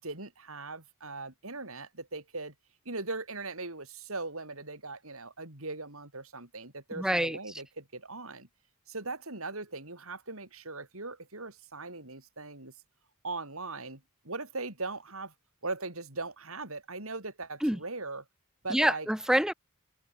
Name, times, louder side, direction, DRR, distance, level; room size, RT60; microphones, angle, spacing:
voice 1, 0.0-2.5 2.9-8.5 8.9-12.7 13.2-15.3 15.6-18.2 18.6-19.1, right 3 dB, 70° right, 5.7 m, -39 dB
voice 2, 7.0-7.4 17.6-17.8 18.7-19.5, equal, 5° right, 0.7 m, -26 dB
head